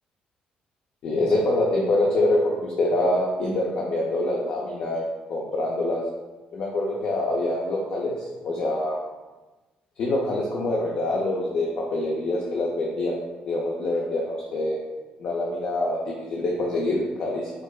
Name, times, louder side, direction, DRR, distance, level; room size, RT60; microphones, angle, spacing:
voice 1, 1.0-6.0 6.5-8.1 8.4-9.0 10.0-13.2 13.5-14.8 15.2-17.5, left 2 dB, 65° left, -3 dB, 0.5 m, -25 dB
4.5 x 2.1 x 2.3 m, 1.2 s
supercardioid pair, 65°, 3 cm